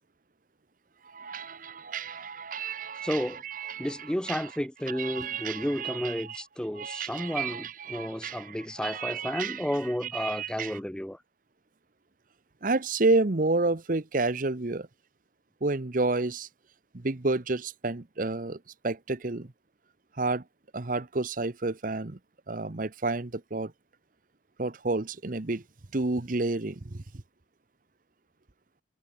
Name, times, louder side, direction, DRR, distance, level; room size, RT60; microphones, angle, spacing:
voice 1, 1.0-4.5 4.9-6.4 6.8-9.7 10.0-10.8 12.6-14.9 15.6-16.5 16.9-19.5 20.2-20.4 20.7-22.2 22.5-23.7 24.6-25.6 25.9-27.0, right 3 dB, 45° right, 1.0 m, -30 dB
voice 2, 3.0-3.4 3.8-11.2, equal, 5° left, 0.5 m, -32 dB
head